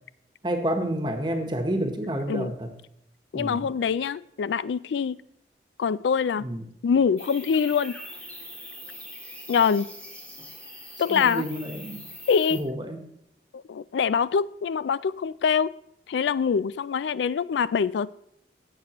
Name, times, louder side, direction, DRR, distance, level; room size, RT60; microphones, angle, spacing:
voice 1, 0.4-2.7 3.3-3.7 6.4-6.6 11.1-12.1 12.5-13.0, right 1 dB, 25° right, 5 dB, 1.1 m, -29 dB
voice 2, 3.3-5.2 5.8-6.5 6.8-8.0 9.5-9.9 11.0-11.5 12.3-12.6 13.5-15.7 16.1-18.1, left 6 dB, 85° left, 19 dB, 0.3 m, -24 dB
sound 1, 7.2-12.6, equal, 10° left, 1.4 m, -42 dB
16.0 x 6.6 x 3.0 m, 0.75 s
head